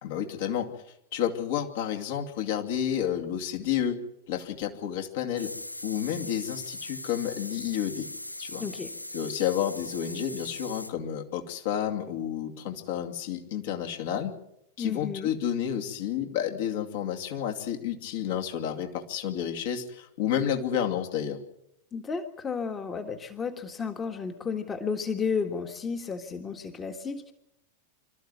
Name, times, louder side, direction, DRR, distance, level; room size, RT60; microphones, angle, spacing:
voice 1, 0.0-0.7 1.1-5.5 5.8-8.1 8.4-8.6 9.1-14.3 14.8-21.4, left 9 dB, 55° left, 4 dB, 2.6 m, -30 dB
sound 1, 5.4-10.9, left 1 dB, 85° left, 0.7 m, -40 dB
voice 2, 8.6-8.9 14.8-15.3 21.9-27.3, left 5 dB, 20° left, 6 dB, 1.7 m, -32 dB
26.0 x 13.5 x 9.5 m, 0.83 s
figure-of-eight pair, 90°, 0 cm